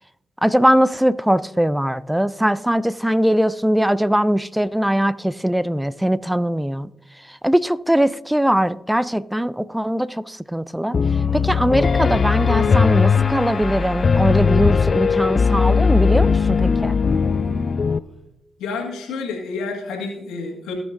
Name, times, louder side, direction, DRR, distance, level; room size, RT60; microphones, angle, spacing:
voice 1, 0.4-6.9 7.4-11.0 11.3-16.9, equal, 5° right, 0.5 m, -20 dB
Piano, 10.9-18.0, left 5 dB, 50° left, 0.4 m, -18 dB
Singing, 11.0-18.1, left 2 dB, 25° left, 3.3 m, -41 dB
voice 2, 18.6-20.7, left 4 dB, 80° left, 1.8 m, -29 dB
18.0 x 6.1 x 2.6 m
hypercardioid pair, 40°, 0 cm